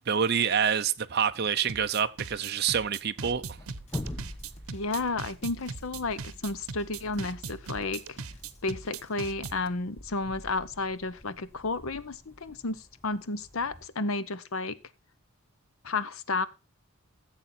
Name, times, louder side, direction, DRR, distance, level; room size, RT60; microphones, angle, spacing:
voice 1, 0.0-3.4, right 7 dB, 45° right, 0.6 m, -27 dB
sound 1, 1.3-13.9, left 1 dB, 10° left, 0.8 m, -46 dB
sound 2, 1.7-9.7, right 5 dB, 80° right, 0.9 m, -40 dB
Drum kit, 3.7-9.1, equal, 30° left, 1.7 m, -54 dB
voice 2, 4.7-8.0 8.6-14.8 15.8-16.5, left 3 dB, 70° left, 0.8 m, -32 dB
15.0 x 7.5 x 4.3 m
head